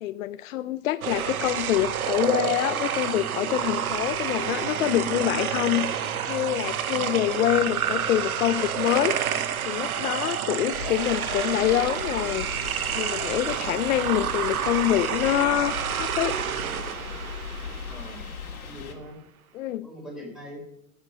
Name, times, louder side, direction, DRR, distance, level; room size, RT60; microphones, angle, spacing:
voice 1, 0.0-12.5 12.9-16.4 19.5-19.9, left 14 dB, 70° left, 13 dB, 0.7 m, -26 dB
sound 1, 1.0-18.3, right 9 dB, 85° right, 1.1 m, -29 dB
sound 2, 10.7-18.9, left 6 dB, 90° left, 2.4 m, -38 dB
voice 2, 17.8-18.2 18.6-19.2 19.8-20.7, equal, ahead, 0 dB, 5.0 m, -41 dB
13.5 x 8.9 x 5.4 m, 0.78 s
hypercardioid pair, 115°, 42 cm